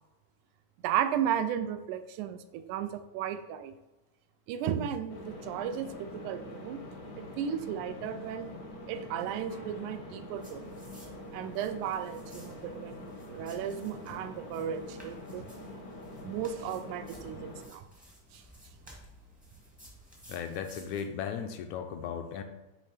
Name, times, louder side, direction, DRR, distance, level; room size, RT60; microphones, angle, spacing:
voice 1, 0.8-3.7 4.5-6.8 7.2-8.5 8.9-10.6 11.3-15.5 16.2-17.8 18.3-18.4, right 9 dB, 85° right, 10 dB, 2.0 m, -34 dB
sound 1, 5.1-17.7, left 1 dB, 60° left, 1.1 m, -45 dB
sound 2, 10.3-21.0, equal, 5° right, 0.7 m, -56 dB
voice 2, 20.3-22.4, left 7 dB, 80° left, 6 dB, 1.9 m, -36 dB
9.1 x 3.2 x 4.9 m, 1.1 s
omnidirectional pair, 3.5 m